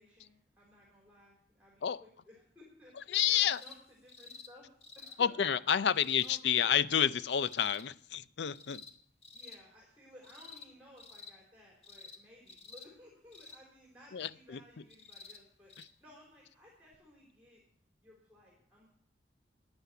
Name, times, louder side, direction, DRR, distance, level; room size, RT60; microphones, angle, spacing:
voice 1, 0.0-5.3 6.2-6.7 9.3-17.6 18.0-18.9, left 1 dB, 5° right, -3 dB, 4.0 m, -58 dB
voice 2, 3.0-3.6 5.2-8.8 14.1-14.6 15.8-15.9, left 9 dB, 70° left, 16 dB, 0.5 m, -30 dB
sound 1, 3.5-3.8 4.1-4.5 4.8-5.2 5.9-6.4 7.3-7.8 8.5-8.9 9.2-9.6 10.2-10.7 11.0-11.3 11.8-12.2 12.5-12.9 13.3-13.6 14.9-15.4 15.7-15.9 16.9-17.0, left 4 dB, 30° left, 1.3 m, -51 dB
15.0 x 9.8 x 5.8 m, 0.65 s
head